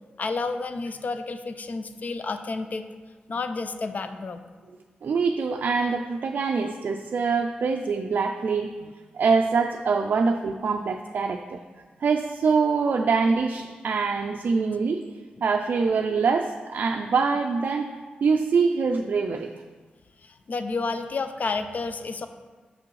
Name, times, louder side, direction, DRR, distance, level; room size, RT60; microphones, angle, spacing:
voice 1, 0.2-2.9 3.3-4.4 20.2-22.3, left 3 dB, 55° left, 9 dB, 0.4 m, -30 dB
voice 2, 5.0-11.6 12.0-15.0 15.4-17.9 18.2-19.5, right 5 dB, 65° right, 4 dB, 0.3 m, -24 dB
6.8 x 5.9 x 3.2 m, 1.4 s
cardioid pair, 75°, 3 cm